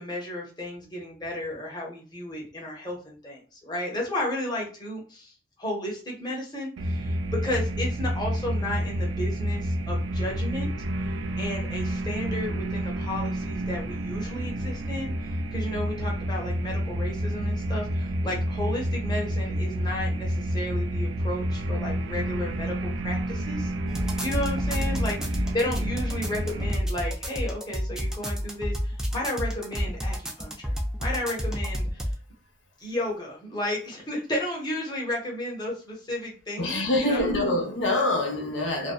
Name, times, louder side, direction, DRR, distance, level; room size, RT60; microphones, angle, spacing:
voice 1, 0.0-5.3 5.6-10.7 11.4-23.7 24.2-32.1 32.8-37.3, left 1 dB, 25° left, 0.8 m, -33 dB
sound 1, 6.8-26.7, equal, 85° right, 0.3 m, -29 dB
sound 2, 23.9-32.1, equal, 5° right, 0.4 m, -30 dB
voice 2, 36.6-38.9, left 1 dB, 80° left, 0.7 m, -25 dB
2.5 x 2.1 x 2.2 m
head